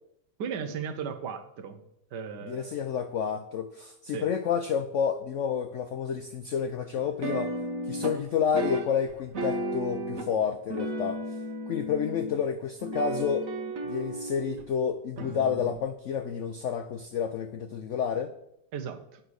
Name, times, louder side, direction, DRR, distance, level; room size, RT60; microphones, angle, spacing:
voice 1, 0.4-1.8 2.1-2.8 4.1-4.3 18.7-19.2, right 6 dB, 70° right, 9 dB, 1.5 m, -36 dB
voice 2, 2.4-7.5 7.9-11.2 11.7-13.5 13.8-18.3, left 7 dB, 85° left, 9 dB, 0.6 m, -30 dB
sound 1, 7.0-8.2 8.5-10.3 10.7-12.4 12.8-14.7 15.2-15.8, right 1 dB, 50° right, 1.4 m, -34 dB
9.1 x 5.9 x 6.3 m, 0.81 s
omnidirectional pair, 1.9 m